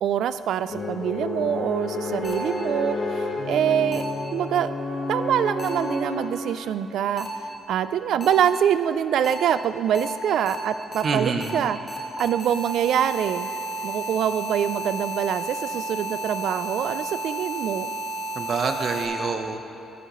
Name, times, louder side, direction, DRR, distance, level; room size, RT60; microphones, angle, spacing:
voice 1, 0.0-4.0 4.3-4.7 5.1-11.8 12.2-13.5 13.8-17.9, right 9 dB, 75° right, 13 dB, 0.3 m, -25 dB
sound 1, 0.7-7.1, left 2 dB, 50° left, 1.6 m, -30 dB
sound 2, 2.2-2.3 3.9-4.0 5.6-5.7 7.2-7.3 8.2-8.3 9.2-9.3 9.9-10.0 10.5-10.6 10.9-11.0 11.4-11.5 11.9-19.1, right 1 dB, 20° left, 1.4 m, -32 dB
voice 2, 11.0-11.6 18.3-19.6, right 4 dB, 50° right, 6 dB, 0.8 m, -26 dB
15.0 x 8.2 x 3.1 m, 2.9 s
cardioid pair, 90°, 0 cm